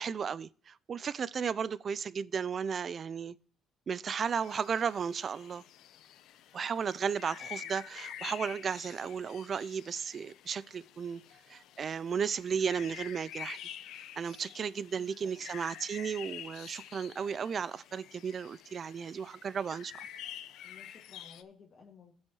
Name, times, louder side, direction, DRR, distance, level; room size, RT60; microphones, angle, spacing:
voice 1, 0.0-3.4 3.9-5.6 6.5-11.2 11.5-13.6 14.2-20.1, right 6 dB, 40° right, 0.3 m, -34 dB
sound 1, 4.2-21.4, left 11 dB, 80° left, 0.6 m, -48 dB
voice 2, 15.0-15.5 20.6-22.1, left 5 dB, 45° left, 2.0 m, -56 dB
16.0 x 6.2 x 3.0 m
cardioid pair, 125°, 0 cm